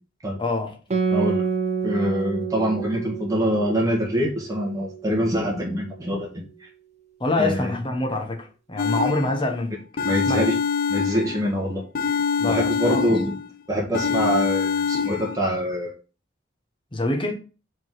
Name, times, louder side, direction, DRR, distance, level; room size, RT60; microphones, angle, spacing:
voice 1, 0.4-0.7 7.2-10.5 12.4-13.1 16.9-17.3, left 2 dB, 25° left, 1.2 m, -26 dB
Guitar, 0.9-5.8, right 5 dB, 35° right, 0.9 m, -29 dB
voice 2, 1.1-1.4 1.8-6.7 7.4-7.7 10.0-10.5 10.9-11.8 12.4-13.4 13.7-15.9, equal, 20° right, 1.5 m, -25 dB
sound 1, 8.8-9.6 10.0-11.6 11.9-13.5 13.9-15.4, left 6 dB, 45° left, 0.4 m, -25 dB
5.1 x 4.0 x 4.7 m
head